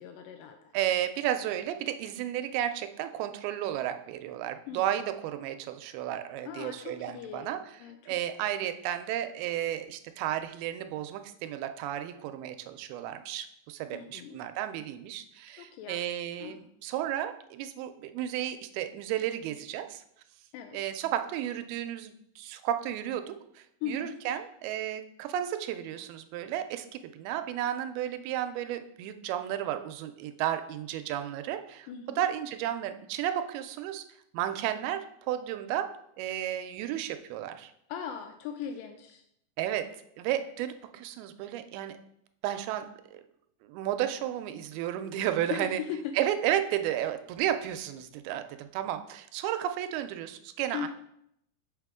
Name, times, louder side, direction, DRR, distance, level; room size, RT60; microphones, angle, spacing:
voice 1, 0.0-0.6 4.7-4.8 6.5-7.5 7.8-8.2 13.9-14.4 15.6-16.0 16.4-16.5 20.5-20.8 23.8-24.2 31.9-32.2 37.9-39.2 45.5-46.0 50.7-50.9, left 8 dB, 85° left, 5 dB, 2.0 m, -38 dB
voice 2, 0.7-7.8 8.1-20.0 20.7-31.9 32.2-34.0 34.3-35.9 36.2-37.7 39.6-39.9 40.2-42.0 42.4-43.2 43.6-45.8 46.1-50.9, right 11 dB, 85° right, 9 dB, 2.4 m, -33 dB
6.6 x 5.7 x 3.6 m, 0.76 s
omnidirectional pair, 4.4 m